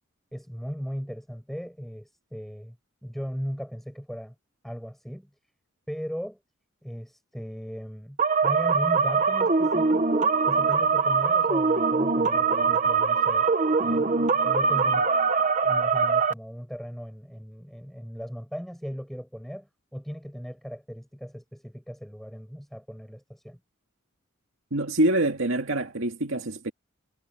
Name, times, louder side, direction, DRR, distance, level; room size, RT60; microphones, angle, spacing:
voice 1, 0.3-2.8 3.0-4.3 4.6-5.3 5.9-6.4 6.8-13.5 13.8-15.1 15.6-23.6, equal, ahead, 6.7 m, -37 dB
sound 1, 8.2-16.3, right 5 dB, 35° right, 1.0 m, -22 dB
voice 2, 24.7-26.7, right 1 dB, 75° right, 2.1 m, -25 dB
head